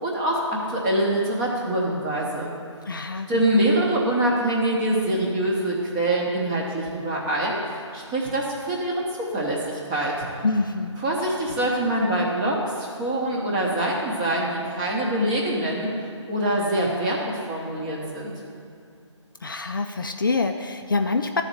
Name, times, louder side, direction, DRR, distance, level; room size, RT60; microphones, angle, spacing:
voice 1, 0.0-2.5 3.3-7.6 7.9-10.3 11.0-15.9 16.3-18.3, right 1 dB, 10° right, -3 dB, 0.9 m, -24 dB
voice 2, 2.9-3.3 10.4-11.0 19.4-21.4, left 3 dB, 45° left, 5 dB, 0.5 m, -25 dB
12.0 x 4.1 x 7.4 m, 2.4 s
figure-of-eight pair, 155°, 16 cm